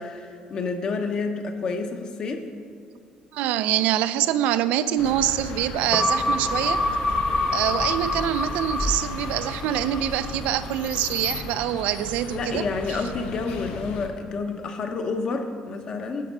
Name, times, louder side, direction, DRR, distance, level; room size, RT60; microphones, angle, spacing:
voice 1, 0.0-2.5 12.3-16.2, left 4 dB, 35° left, 6 dB, 0.8 m, -29 dB
voice 2, 3.3-6.8 7.5-12.7, right 12 dB, 85° right, 12 dB, 0.4 m, -25 dB
sound 1, 5.0-14.1, left 3 dB, 70° left, 1.0 m, -36 dB
sound 2, 5.9-10.6 11.0-11.1, left 2 dB, 15° left, 0.4 m, -26 dB
11.5 x 5.3 x 6.1 m, 2.2 s
cardioid pair, 175°, 2 cm